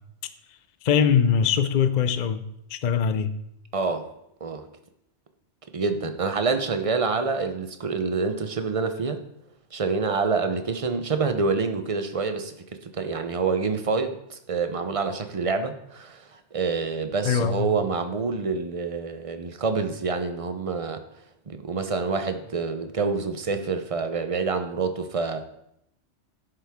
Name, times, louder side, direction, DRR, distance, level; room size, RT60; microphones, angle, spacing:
voice 1, 0.8-3.4 17.2-17.7, left 7 dB, 50° left, 11 dB, 0.6 m, -22 dB
voice 2, 3.7-4.1 4.4-4.7 5.7-9.2 9.7-12.5 12.8-21.0 21.5-25.4, right 4 dB, 35° right, 8 dB, 0.7 m, -27 dB
10.5 x 7.9 x 3.6 m, 0.79 s
omnidirectional pair, 1.2 m